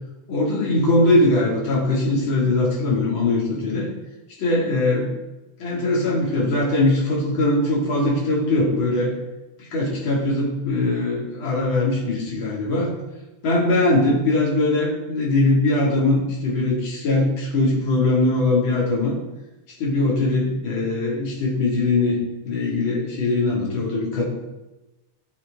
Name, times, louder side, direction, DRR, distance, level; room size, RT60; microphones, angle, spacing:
voice 1, 0.3-3.9 4.4-5.1 5.6-9.1 9.7-12.9 13.4-19.1 19.8-22.2 22.4-24.3, left 2 dB, 40° left, -4 dB, 3.0 m, -21 dB
12.0 x 6.3 x 3.7 m, 1.0 s
omnidirectional pair, 3.5 m